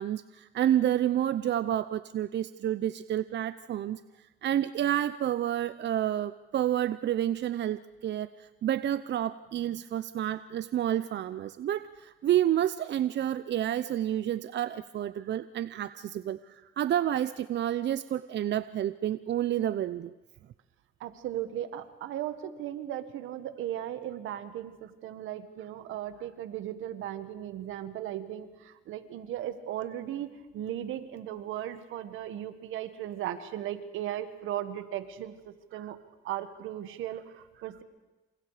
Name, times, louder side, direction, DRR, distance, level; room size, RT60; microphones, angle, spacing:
voice 1, 0.0-4.0 4.4-20.1 35.7-35.9, right 11 dB, 60° right, 14 dB, 0.7 m, -29 dB
voice 2, 21.0-36.0 36.2-37.8, right 11 dB, 85° right, 11 dB, 1.7 m, -37 dB
28.5 x 28.0 x 5.0 m, 1.2 s
cardioid pair, 90°, 20 cm